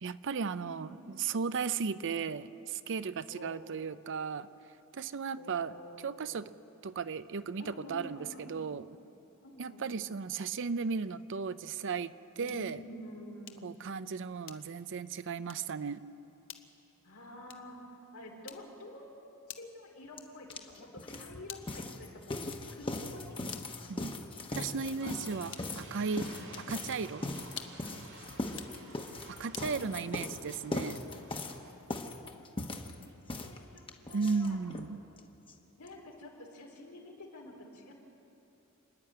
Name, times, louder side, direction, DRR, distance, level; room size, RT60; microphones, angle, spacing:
voice 1, 0.0-4.5 4.9-5.8 6.0-6.5 6.8-8.9 9.6-12.8 13.6-16.0 23.9-24.1 24.6-26.3 26.7-27.2 29.3-31.0 34.1-35.0, right 5 dB, 60° right, 14 dB, 0.5 m, -35 dB
voice 2, 0.6-0.9 2.0-2.2 3.3-3.6 5.4-6.4 7.6-8.9 9.4-10.2 12.4-14.1 17.0-19.1 19.5-24.0 24.6-25.4 26.1-26.7 29.6-30.2 32.7-34.6 35.8-37.9, left 1 dB, 85° left, 0 dB, 3.8 m, -49 dB
sound 1, 12.4-12.8 13.5-13.8 14.4-14.9 15.4-15.7 16.5-16.8 17.5-17.8 18.5-18.9 19.5-19.9 20.5-20.8 21.5-21.9 22.5-22.9 23.5-23.8 24.5-24.9 25.5-25.9 26.5-26.8 27.5-27.9 28.5-28.8 29.5-29.8, left 10 dB, 60° left, 1.1 m, -49 dB
sound 2, 20.2-20.3 20.5-34.9 35.2-35.3 35.5-35.6 35.9-36.0, left 2 dB, 25° left, 1.1 m, -40 dB
sound 3, 24.8-31.7, right 2 dB, 75° right, 4.0 m, -53 dB
29.0 x 11.0 x 8.7 m, 2.9 s
head